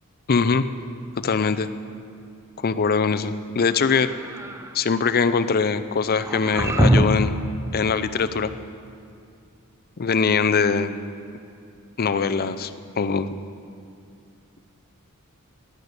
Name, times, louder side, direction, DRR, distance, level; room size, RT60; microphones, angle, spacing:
voice 1, 0.3-0.7 1.2-1.7 2.6-4.1 4.7-7.3 7.7-8.5 10.0-10.9 12.0-12.7 13.0-13.3, left 5 dB, 45° left, 10 dB, 0.5 m, -22 dB
sound 1, 3.8-4.7 6.2-7.4, right 1 dB, 15° right, 0.6 m, -22 dB
17.5 x 9.9 x 6.6 m, 2.4 s
head